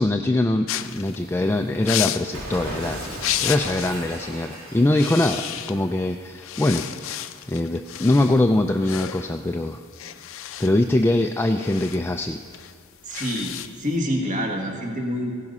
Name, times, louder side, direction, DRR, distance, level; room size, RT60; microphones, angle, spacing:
voice 1, 0.0-3.0 3.4-6.8 7.5-9.8 10.6-12.4, left 1 dB, 10° left, 4 dB, 0.3 m, -22 dB
sound 1, 0.7-4.0 4.3-4.5 4.8-6.0 6.4-14.0, left 11 dB, 65° left, 0.5 m, -32 dB
Cat, 2.3-5.6, right 1 dB, 85° right, 2.6 m, -36 dB
voice 2, 13.0-15.3, equal, 40° right, 1 dB, 1.6 m, -27 dB
16.0 x 10.5 x 5.5 m, 2.3 s
head